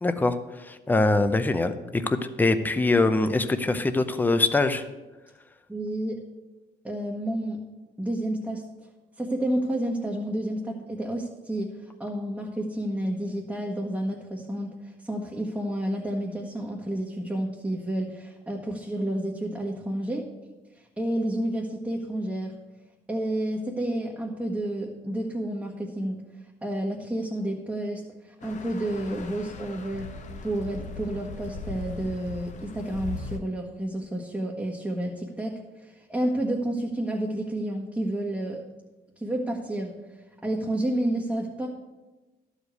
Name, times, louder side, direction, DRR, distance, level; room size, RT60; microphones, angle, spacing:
voice 1, 0.0-4.8, left 2 dB, 10° left, 10 dB, 0.7 m, -23 dB
voice 2, 5.7-6.2 6.8-7.6 8.0-8.6 9.2-11.7 12.0-20.3 21.0-22.5 23.1-26.2 26.6-28.0 28.3-30.1 30.4-38.6 39.2-39.9 40.4-41.7, right 1 dB, 10° right, -3 dB, 1.4 m, -30 dB
sound 1, 28.4-33.4, left 4 dB, 45° left, 1.0 m, -39 dB
12.0 x 5.0 x 8.1 m, 1.1 s
cardioid pair, 110°, 17 cm